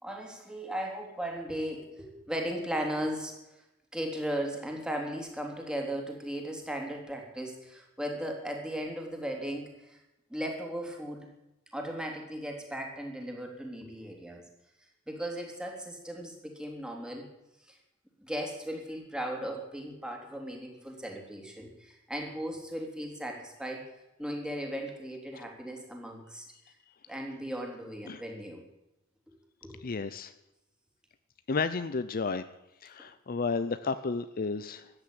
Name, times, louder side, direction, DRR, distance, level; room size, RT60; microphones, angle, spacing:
voice 1, 0.0-3.3 3.9-10.0 10.3-11.3 11.7-14.4 15.1-17.3 17.7-17.8 18.2-23.8 24.2-26.5 27.1-28.6 29.6-29.8, equal, 5° right, 1 dB, 3.3 m, -37 dB
voice 2, 29.8-30.3 31.5-32.4 32.8-34.9, left 4 dB, 45° left, 12 dB, 0.6 m, -32 dB
14.5 x 10.0 x 8.7 m, 0.93 s
head